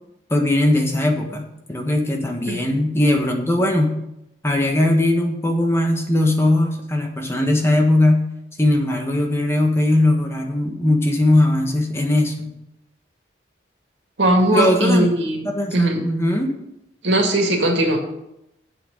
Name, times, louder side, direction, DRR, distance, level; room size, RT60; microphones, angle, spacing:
voice 1, 0.3-4.0 4.4-8.2 8.6-12.5 14.5-15.1 15.5-16.5, left 1 dB, 15° left, 1 dB, 1.4 m, -19 dB
voice 2, 14.2-15.4 15.7-16.0 17.0-18.0, right 1 dB, 85° right, 1 dB, 2.2 m, -18 dB
7.8 x 6.2 x 7.7 m, 0.86 s
head